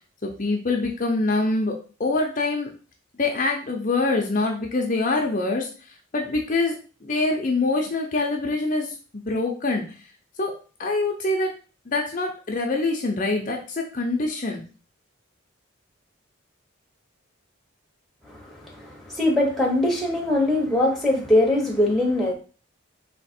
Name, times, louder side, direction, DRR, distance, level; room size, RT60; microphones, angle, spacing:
voice 1, 0.2-2.7 3.2-9.8 10.4-10.5 10.8-11.5 11.9-14.6, left 2 dB, 35° left, 1 dB, 0.6 m, -25 dB
voice 2, 18.3-22.3, left 1 dB, ahead, -1 dB, 0.9 m, -22 dB
4.0 x 2.9 x 4.3 m, 0.36 s
head